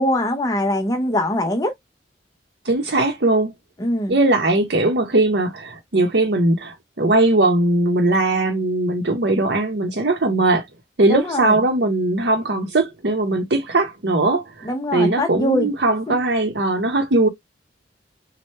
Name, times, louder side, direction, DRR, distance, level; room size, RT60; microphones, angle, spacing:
voice 1, 0.0-1.7 3.8-4.2 11.1-11.5 14.6-15.7 16.1-16.2, left 1 dB, 20° left, 0.6 m, -22 dB
voice 2, 2.6-3.5 4.1-10.6 11.0-17.3, right 2 dB, 65° right, 0.7 m, -19 dB
3.2 x 2.1 x 4.2 m
head